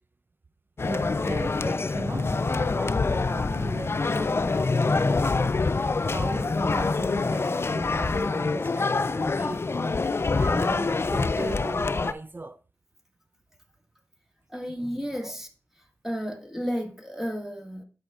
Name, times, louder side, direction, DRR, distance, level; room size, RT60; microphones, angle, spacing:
sound 1, 0.8-12.1, left 3 dB, 50° left, 0.3 m, -26 dB
voice 1, 0.8-5.7 6.0-12.6 15.1-15.4, right 2 dB, 40° right, 0.4 m, -37 dB
voice 2, 14.5-15.5 16.0-17.8, equal, 5° right, 1.8 m, -32 dB
12.0 x 5.1 x 2.4 m
cardioid pair, 45°, 5 cm